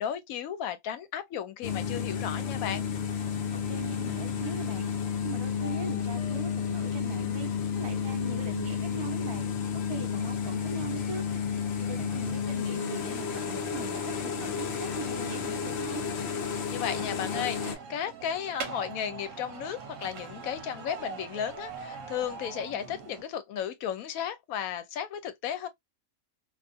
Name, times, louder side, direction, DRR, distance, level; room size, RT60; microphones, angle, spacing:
voice 1, 0.0-2.9 16.7-25.7, left 9 dB, 80° left, 1.0 m, -34 dB
sound 1, 1.6-17.8, left 7 dB, 60° left, 0.8 m, -32 dB
voice 2, 3.7-4.9 5.2-7.5 7.7-9.4 9.7-11.3 11.9-16.1, right 4 dB, 30° right, 0.5 m, -40 dB
sound 2, 16.8-23.2, right 5 dB, 65° right, 1.0 m, -42 dB
2.5 x 2.4 x 2.3 m
omnidirectional pair, 1.5 m